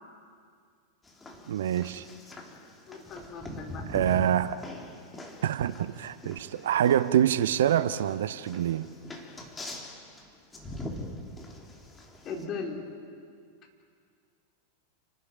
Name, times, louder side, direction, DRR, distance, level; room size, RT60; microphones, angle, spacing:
sound 1, 1.0-12.4, left 1 dB, 15° left, 3.2 m, -43 dB
voice 1, 1.5-2.0 3.9-4.6 5.4-8.9, right 10 dB, 60° right, 0.7 m, -26 dB
voice 2, 2.9-3.8 12.2-12.8, left 4 dB, 35° left, 4.5 m, -37 dB
29.0 x 13.0 x 9.2 m
figure-of-eight pair, 90°, 0 cm